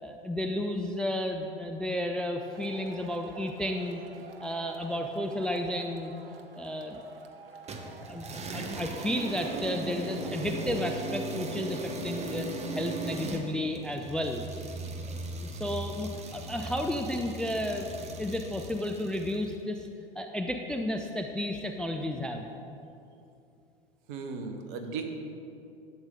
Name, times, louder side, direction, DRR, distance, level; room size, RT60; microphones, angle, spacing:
voice 1, 0.0-4.0 4.4-6.1 6.6-7.1 8.1-12.5 12.7-14.4 15.0-17.9 18.2-19.9 20.2-22.5, left 1 dB, 5° left, 4 dB, 0.3 m, -33 dB
Male speech man speaking / Shout / Clapping, 2.5-11.0, right 4 dB, 75° right, 0.9 m, -49 dB
sound 1, 7.7-19.4, right 2 dB, 20° right, 1.0 m, -37 dB
voice 2, 24.1-25.1, right 4 dB, 55° right, 5 dB, 1.3 m, -36 dB
11.5 x 7.9 x 3.9 m, 2.7 s
figure-of-eight pair, 85°, 30 cm